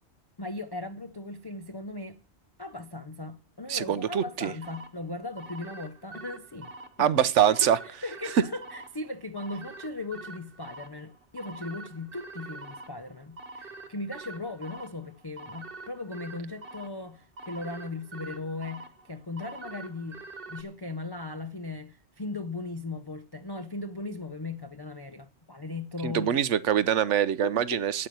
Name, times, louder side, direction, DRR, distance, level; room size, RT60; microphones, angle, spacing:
voice 1, 0.4-2.2 2.6-6.7 7.0-7.1 7.6-20.2 20.5-26.4 27.4-27.8, left 2 dB, 30° left, 0.5 m, -38 dB
voice 2, 3.7-4.5 7.0-7.8 26.0-28.1, right 9 dB, 85° right, 1.1 m, -24 dB
sound 1, 4.6-20.6, right 3 dB, 55° right, 1.4 m, -45 dB
8.6 x 8.6 x 9.3 m
omnidirectional pair, 1.2 m